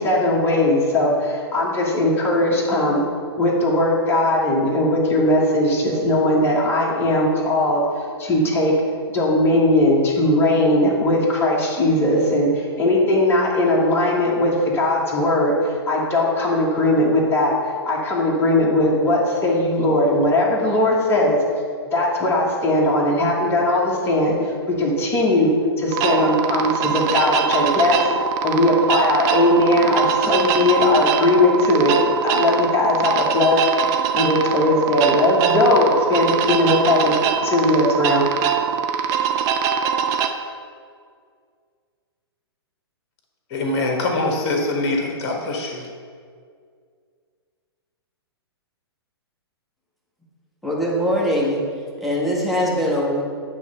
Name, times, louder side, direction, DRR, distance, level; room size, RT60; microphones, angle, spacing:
voice 1, 0.0-3.0 3.4-7.8 8.2-8.7 9.1-15.5 15.9-17.5 17.8-21.4 21.9-28.0 28.4-32.0 32.2-33.6 34.1-37.1 37.4-38.2, left 1 dB, 15° left, -4 dB, 1.4 m, -19 dB
sound 1, 25.9-40.3, right 7 dB, 25° right, 0.4 m, -22 dB
voice 2, 43.5-45.8, left 2 dB, 35° left, 1 dB, 1.5 m, -23 dB
voice 3, 50.6-51.6 52.0-53.2, equal, ahead, -4 dB, 1.2 m, -21 dB
9.2 x 3.2 x 5.3 m, 2.1 s
figure-of-eight pair, 115°, 14 cm